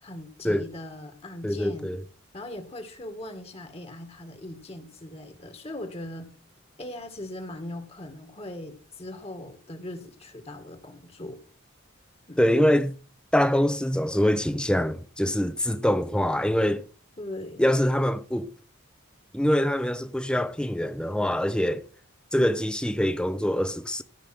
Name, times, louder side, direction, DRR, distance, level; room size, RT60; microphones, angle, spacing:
voice 1, 0.0-1.9 2.3-6.3 6.8-11.4 12.3-12.4 17.2-17.6, left 1 dB, 30° left, 2.0 m, -39 dB
voice 2, 1.4-2.0 12.4-13.0 13.3-16.9 17.6-18.5 19.3-21.8 22.3-24.0, equal, 5° left, 0.8 m, -24 dB
15.5 x 5.3 x 7.8 m
head